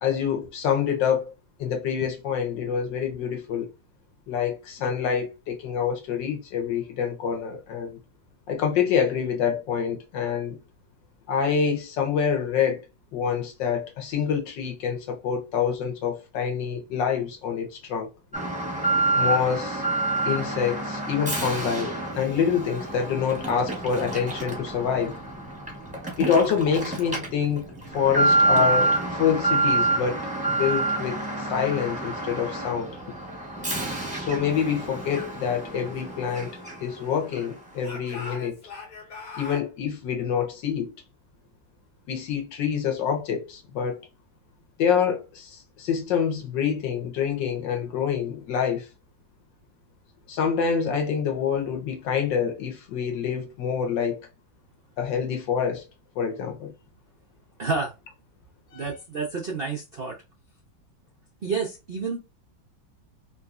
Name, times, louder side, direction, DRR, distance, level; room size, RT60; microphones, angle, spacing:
voice 1, 0.0-1.3 1.6-3.7 4.3-8.0 8.5-10.6 11.3-12.8 13.1-18.1 19.1-19.8 20.2-25.2 26.2-27.6 27.9-32.9 34.1-36.5 36.8-38.6 39.4-40.9 42.1-44.0 44.8-48.9 50.3-54.2 55.0-55.8 56.1-56.7 58.7-58.9, left 7 dB, 70° left, 1.6 m, -26 dB
Alarm, 18.3-37.0 37.3-37.4 38.0-38.1, right 2 dB, 5° right, 0.7 m, -27 dB
Speech / Shout, 35.8-37.3 37.8-39.7, left 4 dB, 50° left, 1.5 m, -42 dB
voice 2, 57.6-57.9 58.7-60.2 61.4-62.2, right 4 dB, 65° right, 0.5 m, -29 dB
3.7 x 2.7 x 2.4 m
omnidirectional pair, 2.1 m